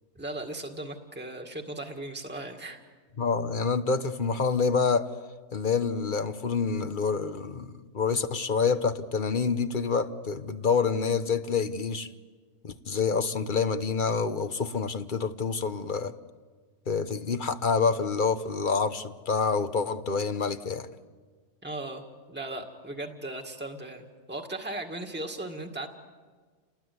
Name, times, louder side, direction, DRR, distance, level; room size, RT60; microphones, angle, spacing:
voice 1, 0.2-2.8 21.6-22.0 22.3-25.9, right 2 dB, 10° right, 2.0 m, -37 dB
voice 2, 3.2-5.1 5.5-12.1 12.6-16.1 16.9-20.9, left 5 dB, 45° left, 1.2 m, -27 dB
29.5 x 19.5 x 9.6 m
omnidirectional pair, 1.2 m